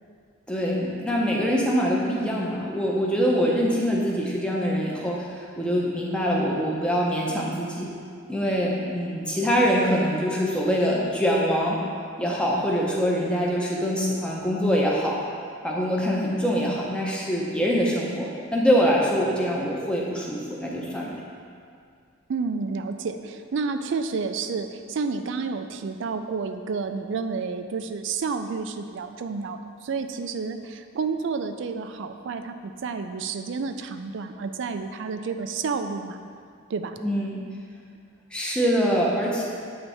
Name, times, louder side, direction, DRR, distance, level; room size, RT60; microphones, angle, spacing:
voice 1, 0.5-7.9 8.3-11.8 12.2-15.2 15.6-21.1 37.0-37.4 38.3-39.4, equal, 5° left, -4 dB, 0.7 m, -24 dB
voice 2, 22.3-36.2 36.7-36.9, right 4 dB, 60° right, 8 dB, 0.4 m, -30 dB
8.6 x 3.3 x 4.1 m, 2.2 s
head